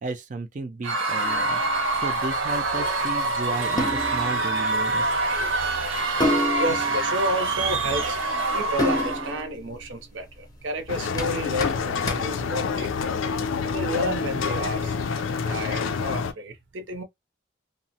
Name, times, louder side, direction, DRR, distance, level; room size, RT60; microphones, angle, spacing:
voice 1, 0.0-1.6 2.0-5.2, right 3 dB, 40° right, 0.4 m, -33 dB
Screaming / Cheering / Crowd, 0.8-9.4, right 2 dB, 85° right, 1.1 m, -25 dB
sound 1, 1.3-13.4, left 1 dB, 20° left, 0.6 m, -32 dB
voice 2, 5.5-8.2 8.5-13.3 13.7-17.0, equal, 70° right, 0.7 m, -32 dB
sound 2, 10.9-16.3, left 5 dB, 90° left, 0.4 m, -27 dB
2.8 x 2.0 x 2.7 m
head